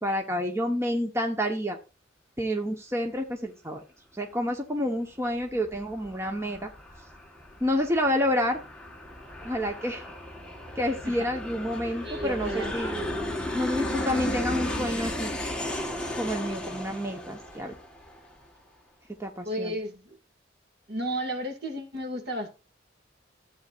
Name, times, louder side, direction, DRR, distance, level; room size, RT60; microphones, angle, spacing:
voice 1, 0.0-1.8 2.4-3.8 4.1-6.7 7.6-8.6 9.4-10.1 10.7-15.3 16.1-17.7 19.2-19.7, equal, 15° right, 1.3 m, -29 dB
Aircraft, 5.2-18.4, left 1 dB, 5° left, 1.6 m, -35 dB
voice 2, 12.0-13.2 19.4-20.2 20.9-22.5, right 1 dB, 60° right, 2.5 m, -33 dB
14.5 x 9.0 x 2.6 m
head